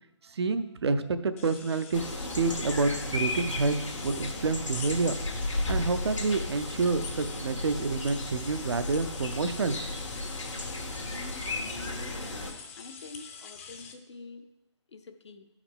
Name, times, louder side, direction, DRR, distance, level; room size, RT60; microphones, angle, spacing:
voice 1, 0.3-3.8 4.0-5.2 5.7-9.8, right 4 dB, 60° right, 11 dB, 0.5 m, -28 dB
sound 1, 1.4-13.9, left 6 dB, 30° left, 0.6 m, -46 dB
sound 2, 1.9-12.5, left 2 dB, 85° left, 1.4 m, -34 dB
voice 2, 12.8-14.5 14.9-15.5, left 3 dB, 65° left, 7 dB, 0.7 m, -47 dB
10.0 x 4.8 x 3.6 m, 0.94 s
figure-of-eight pair, 135°, 15 cm